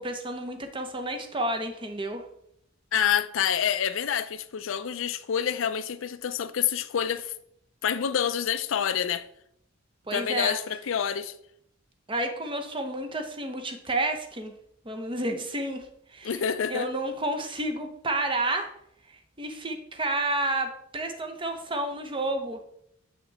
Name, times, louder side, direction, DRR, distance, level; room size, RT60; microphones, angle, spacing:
voice 1, 0.0-2.2 10.1-10.6 12.1-14.5 14.8-16.4 16.7-18.7 19.1-22.6, right 2 dB, 25° right, 0.8 m, -30 dB
voice 2, 2.9-7.3 7.8-9.2 10.1-11.3 16.2-16.9, left 8 dB, 75° left, 0.4 m, -27 dB
7.3 x 5.8 x 3.4 m
head